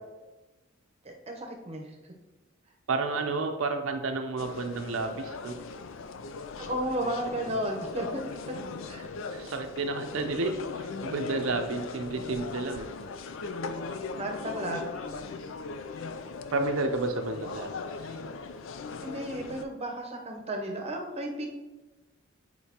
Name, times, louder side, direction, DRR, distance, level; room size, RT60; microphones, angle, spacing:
voice 1, 1.0-1.9 6.6-8.2 8.9-9.1 14.2-15.1 19.0-21.5, right 1 dB, 30° right, 2 dB, 0.8 m, -33 dB
voice 2, 2.9-5.6 9.3-10.6 11.0-12.9 16.5-17.7, right 3 dB, 80° right, 5 dB, 0.6 m, -30 dB
sound 1, 4.4-19.6, left 4 dB, 70° left, 0.4 m, -39 dB
8.2 x 4.3 x 2.9 m, 1.2 s
head